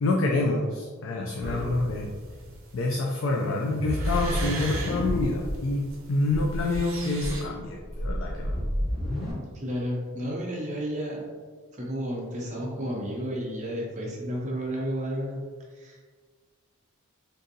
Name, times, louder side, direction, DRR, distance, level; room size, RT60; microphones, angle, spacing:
voice 1, 0.0-2.1 2.7-8.6, left 2 dB, 60° left, 0 dB, 0.3 m, -27 dB
sound 1, 1.4-7.4, right 2 dB, 70° right, 0.7 m, -38 dB
sound 2, 3.7-5.6 5.9-6.0 6.3-6.8 7.2-9.3, equal, ahead, 1.0 m, -30 dB
voice 2, 9.5-11.2 11.8-15.4 15.7-16.0, equal, 35° right, -4 dB, 0.7 m, -32 dB
3.8 x 2.6 x 2.6 m, 1.5 s
head